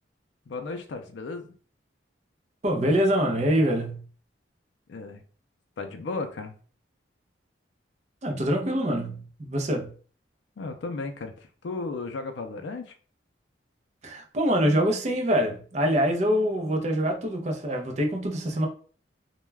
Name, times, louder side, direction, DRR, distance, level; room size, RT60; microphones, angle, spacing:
voice 1, 0.5-1.5 4.9-5.2 5.8-6.5 10.6-12.9, left 3 dB, 70° left, 0.4 m, -35 dB
voice 2, 2.6-4.0 8.2-9.9 14.0-18.7, equal, 35° right, 0.5 m, -25 dB
2.2 x 2.2 x 3.2 m
head